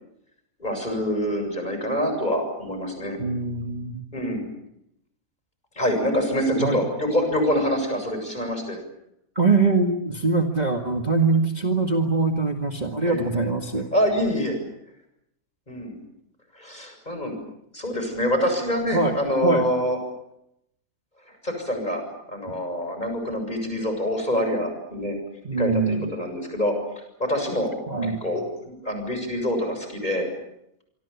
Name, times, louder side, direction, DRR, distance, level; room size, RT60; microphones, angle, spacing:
voice 1, 0.6-3.2 4.1-4.5 5.8-8.8 10.6-10.7 13.0-13.3 13.9-14.6 15.7-16.0 16.5-17.4 17.7-20.0 21.3-22.0 22.3-25.2 25.6-27.7 28.0-30.3, equal, 25° left, 5 dB, 7.5 m, -26 dB
voice 2, 3.2-4.1 6.6-6.8 9.4-13.9 18.9-19.7 25.4-26.1 27.9-28.2, right 3 dB, 25° right, 3 dB, 1.9 m, -23 dB
26.0 x 25.0 x 7.2 m, 0.79 s
omnidirectional pair, 1.6 m